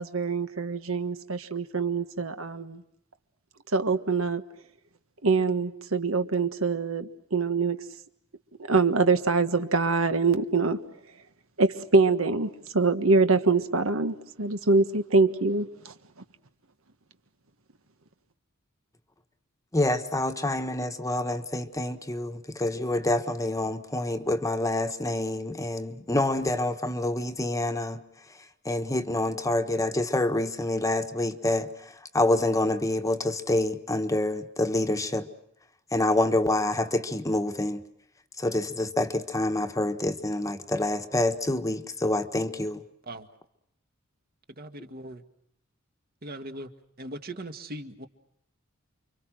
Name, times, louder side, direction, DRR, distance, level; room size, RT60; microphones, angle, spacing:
voice 1, 0.0-2.8 3.7-4.4 5.2-7.8 8.7-10.8 11.6-15.9, right 4 dB, 75° right, 1.5 m, -24 dB
voice 2, 19.7-28.0 28.3-28.4 28.6-35.3 35.9-37.8 38.4-42.8, left 1 dB, 15° left, 1.3 m, -27 dB
voice 3, 44.5-45.2 46.2-46.7 47.0-48.1, right 1 dB, 45° right, 1.9 m, -39 dB
29.5 x 24.5 x 6.2 m
head